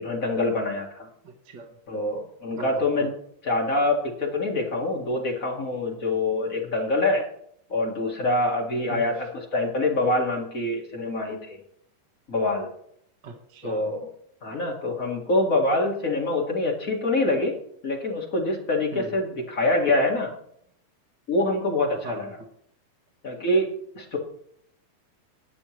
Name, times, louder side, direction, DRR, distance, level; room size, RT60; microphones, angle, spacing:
voice 1, 0.0-1.1 1.9-3.1 3.4-7.3 7.7-11.6 12.3-12.7 13.6-14.1 14.4-17.6 17.8-20.3 21.3-22.3 23.2-24.2, left 2 dB, 30° left, -1 dB, 2.0 m, -25 dB
voice 2, 1.2-1.8 2.6-3.1 8.9-9.3 13.2-13.9 18.9-19.2 22.0-22.5, right 3 dB, 45° right, 0 dB, 1.7 m, -40 dB
21.0 x 6.9 x 3.2 m, 0.68 s
omnidirectional pair, 3.6 m